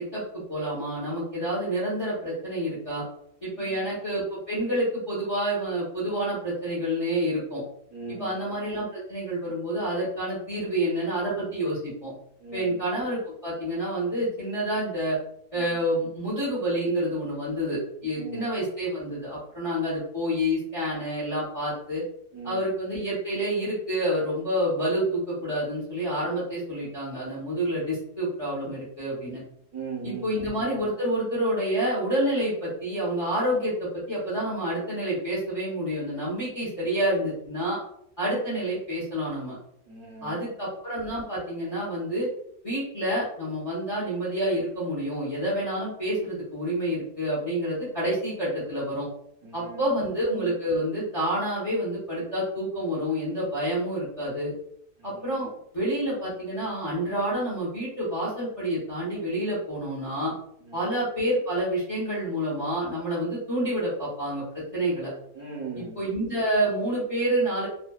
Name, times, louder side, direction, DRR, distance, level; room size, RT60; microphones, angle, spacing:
voice 1, 0.0-3.0 3.4-7.6 8.1-12.1 12.5-15.2 15.5-22.0 22.4-29.4 30.0-37.8 38.2-39.6 40.2-42.3 42.6-49.1 49.5-54.5 55.0-55.5 55.7-60.3 60.7-64.4 64.7-65.1 65.8-67.7, right 1 dB, 30° left, -9 dB, 0.7 m, -28 dB
voice 2, 7.9-8.3 12.4-12.8 15.6-15.8 18.1-18.5 22.3-22.7 29.7-30.4 39.9-40.4 49.4-50.0 55.0-55.3 60.7-60.8 65.3-66.0, right 4 dB, 35° right, -6 dB, 0.7 m, -39 dB
2.6 x 2.2 x 2.3 m, 0.72 s
omnidirectional pair, 1.7 m